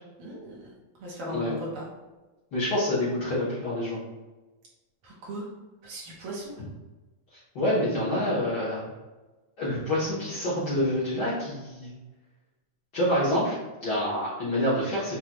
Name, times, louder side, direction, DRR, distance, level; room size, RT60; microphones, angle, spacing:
voice 1, 0.2-0.7 1.0-1.9 5.0-5.5 5.8-6.5, right 1 dB, 65° right, -4 dB, 1.3 m, -37 dB
voice 2, 2.5-4.0 7.3-8.9 9.6-11.9 12.9-15.2, left 1 dB, 85° left, -10 dB, 0.9 m, -27 dB
6.5 x 2.2 x 2.9 m, 1.1 s
omnidirectional pair, 3.5 m